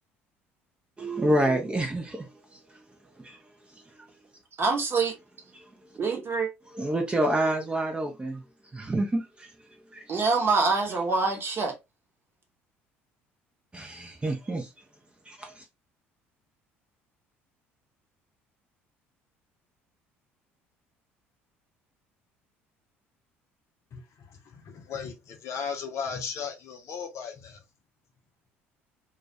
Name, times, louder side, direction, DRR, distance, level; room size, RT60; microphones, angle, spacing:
voice 1, 1.0-2.6 3.2-3.4 5.5-5.6 6.7-8.4 8.7-9.5 9.9-10.0 13.7-14.7 15.3-15.6, right 1 dB, 15° right, 0.5 m, -28 dB
voice 2, 4.6-5.1 6.0-6.5 10.1-11.7, right 4 dB, 35° right, 0.9 m, -25 dB
voice 3, 23.9-27.6, left 6 dB, 50° left, 0.6 m, -36 dB
2.2 x 2.2 x 2.7 m
figure-of-eight pair, 55°, 7 cm